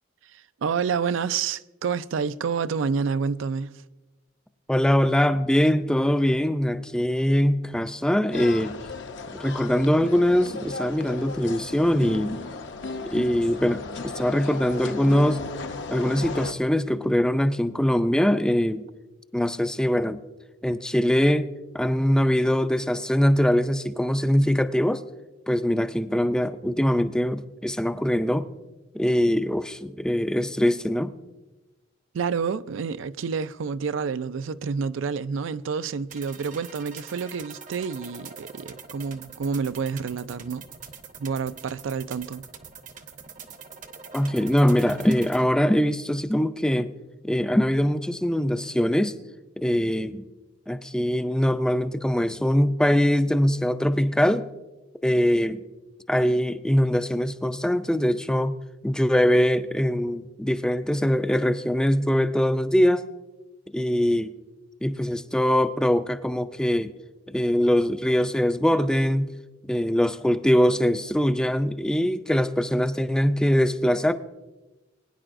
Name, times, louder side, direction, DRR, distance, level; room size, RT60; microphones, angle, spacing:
voice 1, 0.3-3.7 32.1-40.7 41.2-42.4, right 5 dB, 75° right, 0.4 m, -28 dB
voice 2, 4.7-8.8 9.4-12.4 13.1-15.4 15.9-18.8 19.3-20.2 20.6-21.5 21.7-25.0 25.5-28.5 28.9-31.1 44.1-46.9 47.2-49.1 49.6-50.3 50.7-54.4 55.0-55.6 56.1-58.6 58.8-63.0 63.7-64.3 64.8-66.9 67.3-69.3 69.7-74.1, equal, 5° left, 0.3 m, -22 dB
sound 1, 8.3-16.5, left 3 dB, 65° left, 0.7 m, -35 dB
sound 2, 36.1-45.4, right 6 dB, 40° right, 0.7 m, -44 dB
21.0 x 9.9 x 2.5 m
head